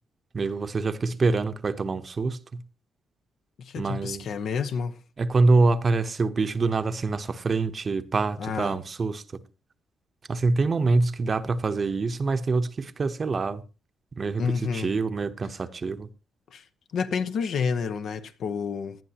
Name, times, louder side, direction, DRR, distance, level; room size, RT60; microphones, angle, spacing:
voice 1, 0.3-2.6 3.8-4.3 5.2-9.2 10.3-13.6 14.1-16.1, right 3 dB, 40° right, 0.9 m, -25 dB
voice 2, 3.6-5.0 8.4-8.8 14.4-14.9 16.5-16.6 16.9-19.0, left 5 dB, 70° left, 1.0 m, -29 dB
18.5 x 11.0 x 2.9 m
cardioid pair, 95°, 0 cm